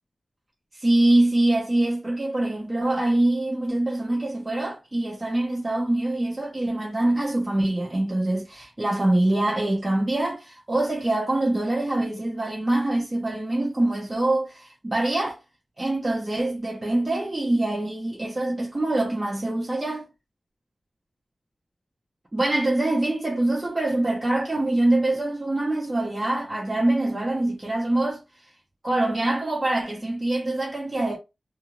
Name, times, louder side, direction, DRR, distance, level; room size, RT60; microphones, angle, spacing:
voice 1, 0.8-15.4 15.8-20.1 22.3-28.2 28.8-31.2, right 1 dB, 25° right, 0.7 m, -24 dB
2.4 x 2.4 x 2.9 m
wide cardioid pair, 100°, 0 cm